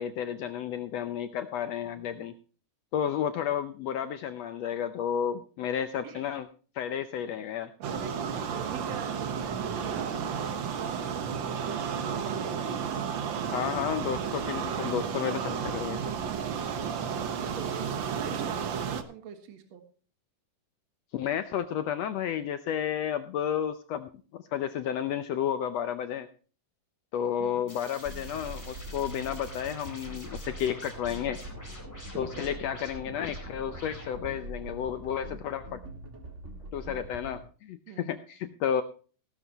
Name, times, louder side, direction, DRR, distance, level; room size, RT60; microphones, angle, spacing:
voice 1, 0.0-2.3 2.9-6.5 6.7-7.7 13.5-16.0 21.1-26.3 27.1-31.4 32.1-35.8 36.7-38.8, left 9 dB, 80° left, 10 dB, 1.5 m, -32 dB
voice 2, 1.8-2.3 6.0-6.3 7.8-13.4 16.8-19.8 27.4-27.7 32.1-32.5 37.9-38.2, right 7 dB, 55° right, 7 dB, 2.7 m, -44 dB
sound 1, 7.8-19.0, right 7 dB, 70° right, 1.1 m, -32 dB
sound 2, 27.7-34.4, left 1 dB, 5° left, 3.9 m, -47 dB
sound 3, 28.0-37.4, right 1 dB, 25° right, 1.7 m, -43 dB
16.5 x 12.5 x 2.9 m, 0.39 s
omnidirectional pair, 3.8 m